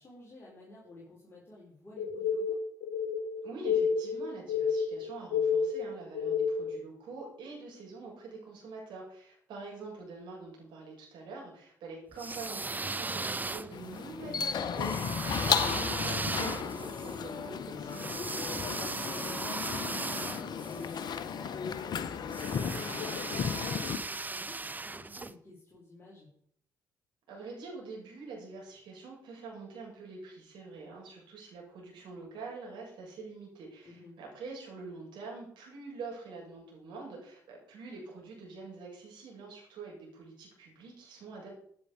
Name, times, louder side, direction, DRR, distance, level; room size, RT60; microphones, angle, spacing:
voice 1, 0.0-2.6 18.6-26.3 33.8-34.2, left 2 dB, 25° left, -5 dB, 6.3 m, -53 dB
sound 1, 2.0-6.8, left 6 dB, 70° left, 1.1 m, -30 dB
voice 2, 3.4-18.2 27.3-41.6, right 3 dB, 60° right, -2 dB, 7.9 m, -45 dB
sound 2, 12.1-14.0 14.8-21.2 22.3-25.3, right 3 dB, 20° right, 0.9 m, -37 dB
sound 3, 13.7-24.0, left 7 dB, 50° left, 1.3 m, -34 dB
16.5 x 9.8 x 5.3 m, 0.63 s
figure-of-eight pair, 45°, 9 cm